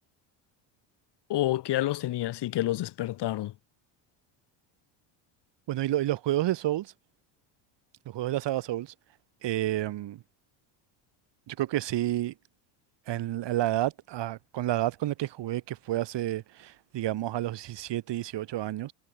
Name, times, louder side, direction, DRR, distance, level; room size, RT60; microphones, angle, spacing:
voice 1, 1.3-3.5, left 14 dB, 55° left, 2.3 m, -28 dB
voice 2, 5.7-6.9 8.1-8.9 9.4-10.2 11.5-12.3 13.1-18.9, right 14 dB, 55° right, 5.5 m, -30 dB
supercardioid pair, 105°, 49 cm